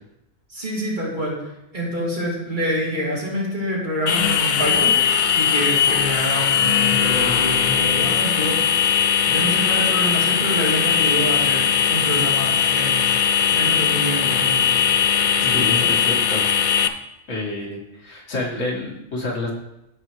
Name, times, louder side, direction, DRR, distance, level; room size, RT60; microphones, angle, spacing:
voice 1, 0.5-5.0 5.3-8.6 9.3-13.1 13.5-14.7 15.4-15.9, equal, 40° right, -6 dB, 3.0 m, -26 dB
sound 1, 4.1-16.9, left 8 dB, 60° left, 0.5 m, -19 dB
voice 2, 15.5-16.5 17.3-19.5, left 2 dB, 80° left, -3 dB, 2.1 m, -28 dB
14.5 x 5.0 x 3.2 m, 0.89 s
omnidirectional pair, 1.3 m